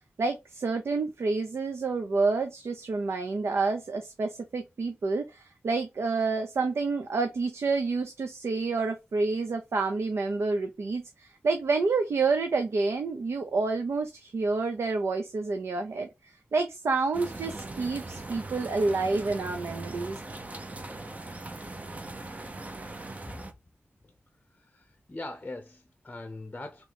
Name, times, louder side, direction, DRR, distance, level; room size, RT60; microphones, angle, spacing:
voice 1, 0.2-20.2, right 3 dB, 80° right, 0.6 m, -29 dB
sound 1, 17.1-23.5, right 2 dB, 35° right, 0.7 m, -40 dB
voice 2, 24.5-26.9, left 2 dB, 30° left, 0.7 m, -41 dB
3.6 x 3.1 x 3.4 m
wide cardioid pair, 80°, 4 cm